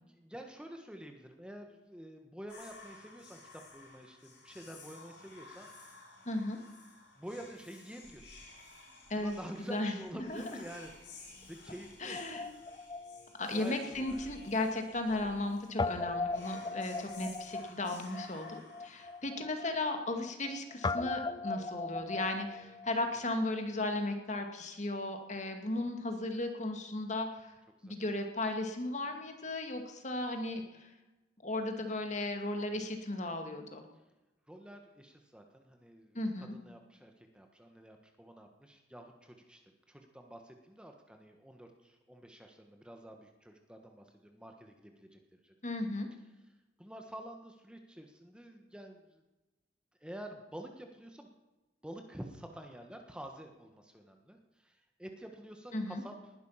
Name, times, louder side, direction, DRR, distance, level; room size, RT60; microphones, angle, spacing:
voice 1, 0.1-5.9 7.2-8.4 9.1-12.2 13.5-14.2 15.3-15.4 27.8-27.9 34.5-45.5 46.8-49.2 50.0-51.3 51.8-56.3, right 1 dB, 5° right, 4 dB, 1.4 m, -49 dB
Whispering, 2.5-19.6, left 3 dB, 75° left, 6.6 m, -55 dB
voice 2, 6.3-6.6 9.1-9.3 9.7-9.9 10.3-10.4 12.0-12.5 13.4-27.5 27.8-30.9 31.4-33.8 36.1-36.5 45.6-46.1 55.7-56.0, left 2 dB, 40° left, 5 dB, 2.2 m, -35 dB
Guitar, 12.1-14.5 14.8-14.9 15.8-23.6, left 3 dB, 25° left, 0.5 m, -39 dB
20.0 x 11.5 x 5.8 m, 1.1 s
head